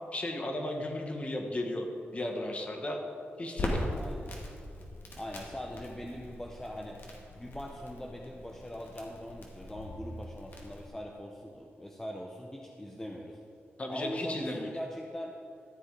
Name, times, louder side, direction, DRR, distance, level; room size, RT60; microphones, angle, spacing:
voice 1, 0.1-1.9 2.1-3.0 3.4-3.9 13.8-14.7, left 1 dB, 30° left, 2 dB, 1.5 m, -35 dB
Crackle, 3.6-10.9, left 1 dB, 60° left, 2.0 m, -40 dB
voice 2, 3.9-4.4 5.2-7.0 7.4-13.4 13.9-15.4, equal, 10° left, 0 dB, 0.8 m, -41 dB
14.0 x 8.2 x 4.9 m, 2.5 s
wide cardioid pair, 125°, 4 cm